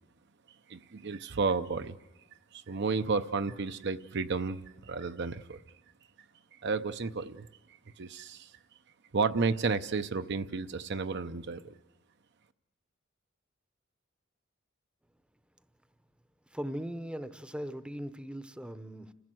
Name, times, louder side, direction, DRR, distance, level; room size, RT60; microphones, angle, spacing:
voice 1, 0.7-2.0 2.5-5.6 6.6-7.5 8.0-8.5 9.1-11.7, right 4 dB, 55° right, 0.7 m, -32 dB
voice 2, 16.5-19.1, equal, 5° right, 0.7 m, -39 dB
29.5 x 15.5 x 7.7 m
head